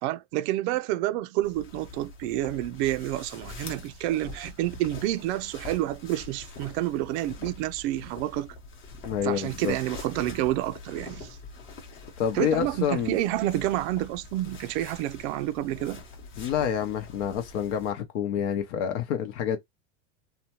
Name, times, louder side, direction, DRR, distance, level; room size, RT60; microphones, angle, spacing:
voice 1, 0.0-8.6 9.2-11.4 12.3-16.0, right 15 dB, 60° right, 0.5 m, -29 dB
sound 1, 1.4-17.9, left 3 dB, 30° left, 0.9 m, -44 dB
voice 2, 9.0-9.7 12.2-13.1 16.4-19.6, left 8 dB, 60° left, 0.8 m, -28 dB
2.8 x 2.2 x 2.8 m
supercardioid pair, 125°, 39 cm